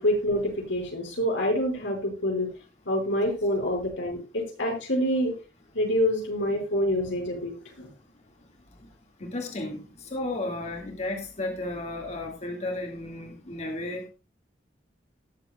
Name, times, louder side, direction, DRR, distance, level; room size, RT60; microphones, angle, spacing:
voice 1, 0.0-2.5 2.9-5.3 5.7-7.9, equal, 90° left, 1 dB, 5.4 m, -26 dB
voice 2, 9.2-14.0, left 2 dB, 40° left, 2 dB, 2.0 m, -33 dB
19.0 x 7.6 x 2.3 m, 0.28 s
head